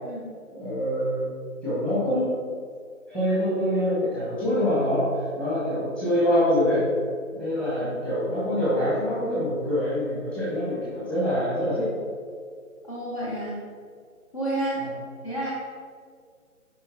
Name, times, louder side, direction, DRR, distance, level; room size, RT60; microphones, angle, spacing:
voice 1, 0.5-1.3 1.6-2.3 3.1-6.8 7.3-11.9 14.7-14.9, equal, 5° left, -13 dB, 1.4 m, -25 dB
voice 2, 12.9-13.6 14.3-14.8 15.2-15.5, right 1 dB, 25° left, -9 dB, 1.0 m, -30 dB
10.0 x 4.5 x 3.8 m, 2.1 s
figure-of-eight pair, 160°, 43 cm